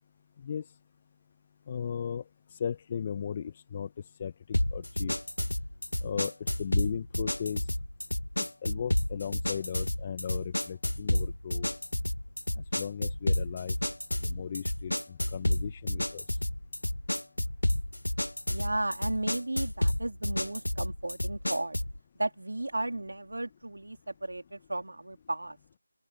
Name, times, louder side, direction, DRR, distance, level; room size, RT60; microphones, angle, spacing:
voice 1, 1.7-2.2 2.5-3.9 4.2-5.1 6.0-7.7 8.6-11.7 12.7-13.8 14.2-16.4, left 7 dB, 25° left, 1.4 m, -36 dB
sound 1, 4.5-22.0, left 1 dB, 80° left, 0.9 m, -31 dB
voice 2, 18.5-21.8 22.2-25.6, right 2 dB, 70° right, 3.9 m, -34 dB
figure-of-eight pair, 165°, 0 cm